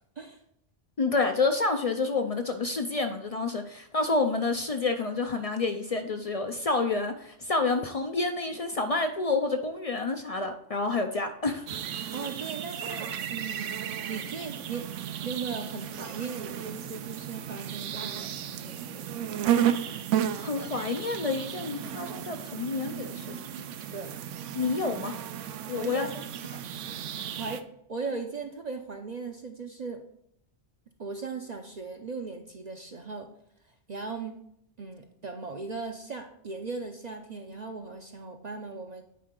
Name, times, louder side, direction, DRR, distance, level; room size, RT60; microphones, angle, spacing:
voice 1, 1.0-11.8 19.7-20.0 20.4-23.4 24.5-25.1 25.7-26.1, left 3 dB, 55° left, 7 dB, 0.4 m, -29 dB
sound 1, 11.7-27.6, right 10 dB, 80° right, 0.9 m, -33 dB
voice 2, 12.1-14.9 15.2-19.1 23.9-24.2 25.8-26.2 27.4-30.0 31.0-33.3 33.6-34.4 34.8-39.0, right 4 dB, 45° right, 4 dB, 0.6 m, -38 dB
9.4 x 4.7 x 3.7 m, 0.73 s
omnidirectional pair, 1.2 m